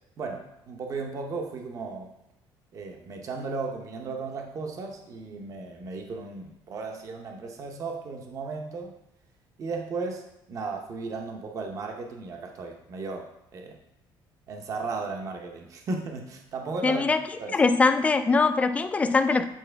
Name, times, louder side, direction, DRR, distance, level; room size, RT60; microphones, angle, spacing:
voice 1, 0.2-2.1 2.7-8.9 9.6-13.3 13.5-13.8 14.5-17.0 17.4-17.6, right 4 dB, 35° right, 3 dB, 0.7 m, -35 dB
voice 2, 16.8-17.2 17.5-19.5, left 4 dB, 15° left, 9 dB, 0.3 m, -22 dB
8.9 x 4.4 x 3.4 m, 0.84 s
cardioid pair, 165°, 9 cm